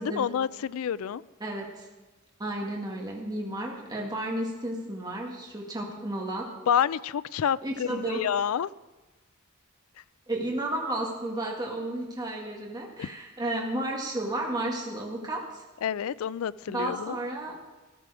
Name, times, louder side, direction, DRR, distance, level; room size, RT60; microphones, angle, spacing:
voice 1, 0.0-1.2 6.7-8.7 13.0-13.1 15.8-17.2, left 8 dB, 75° left, 18 dB, 0.3 m, -28 dB
voice 2, 1.4-1.9 2.4-6.5 7.6-8.2 10.3-15.6 16.7-17.5, right 1 dB, 20° right, -1 dB, 1.7 m, -32 dB
14.0 x 12.0 x 4.8 m, 1.2 s
head